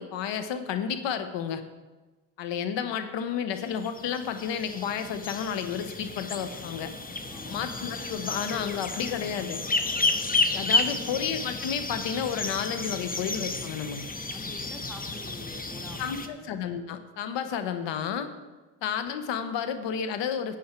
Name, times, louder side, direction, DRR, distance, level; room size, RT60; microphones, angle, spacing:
voice 1, 0.0-1.6 2.4-6.9 7.5-9.6 10.5-14.0 16.0-18.3 18.8-20.6, left 8 dB, 75° left, 9 dB, 1.2 m, -31 dB
sound 1, 3.6-16.3, left 3 dB, 20° left, 1.0 m, -32 dB
voice 2, 7.3-7.7 10.9-11.2 14.3-16.5, equal, ahead, 1 dB, 2.3 m, -47 dB
11.5 x 8.4 x 4.5 m, 1.2 s
supercardioid pair, 60°, 44 cm